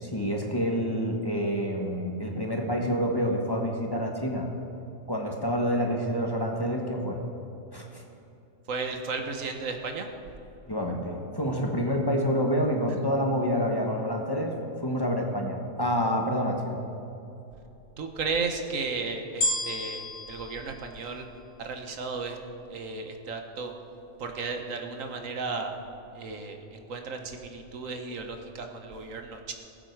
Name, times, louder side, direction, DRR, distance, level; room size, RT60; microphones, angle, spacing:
voice 1, 0.0-4.5 5.1-7.2 7.7-8.0 10.7-16.8, equal, 20° left, 0 dB, 1.3 m, -28 dB
voice 2, 8.7-10.1 18.0-21.3 21.6-22.4 22.7-23.7 24.2-25.7 26.1-29.5, right 4 dB, 85° right, 5 dB, 1.5 m, -34 dB
sound 1, 19.4-21.8 22.4-22.5, left 1 dB, 85° left, 2.1 m, -32 dB
19.5 x 8.1 x 4.7 m, 2.8 s
omnidirectional pair, 1.3 m